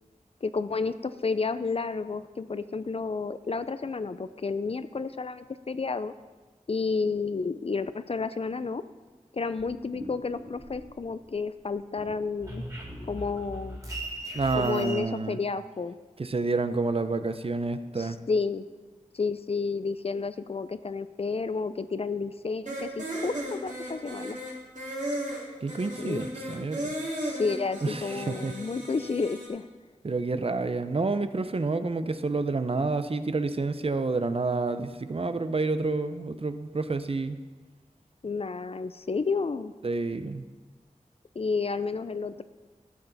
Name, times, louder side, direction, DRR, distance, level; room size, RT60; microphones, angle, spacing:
voice 1, 0.4-6.1 6.7-8.8 9.3-12.6 13.1-13.8 14.5-15.9 18.0-18.6 19.1-24.4 26.0-26.2 27.2-29.6 38.2-39.7 41.4-42.4, left 4 dB, 50° left, 13 dB, 0.4 m, -31 dB
sound 1, 9.6-11.3 11.6-15.0, right 1 dB, 25° right, 2.2 m, -39 dB
voice 2, 14.3-15.4 16.2-18.2 25.6-26.9 27.8-28.5 30.0-37.4 39.8-40.5, right 3 dB, 45° right, 11 dB, 0.5 m, -29 dB
sound 2, 22.7-29.5, right 1 dB, 70° right, 2.9 m, -35 dB
13.0 x 7.8 x 4.0 m, 1.3 s
wide cardioid pair, 75°, 13 cm